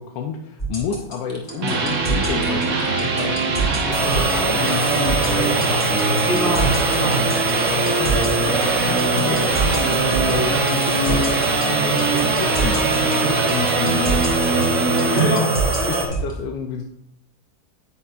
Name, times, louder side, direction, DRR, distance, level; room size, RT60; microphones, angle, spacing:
voice 1, 0.0-6.3 7.6-14.3 14.9-15.5 15.9-16.8, left 6 dB, 85° left, 4 dB, 1.3 m, -30 dB
sound 1, 0.6-16.3, right 4 dB, 25° left, 1.8 m, -26 dB
sound 2, 1.3-15.3, right 3 dB, 55° right, 1.5 m, -22 dB
sound 3, 3.9-16.1, right 2 dB, 75° right, 2.0 m, -24 dB
voice 2, 6.3-7.3 15.1-16.1, equal, 60° left, -1 dB, 2.8 m, -25 dB
10.0 x 8.4 x 2.4 m, 0.79 s
omnidirectional pair, 1.9 m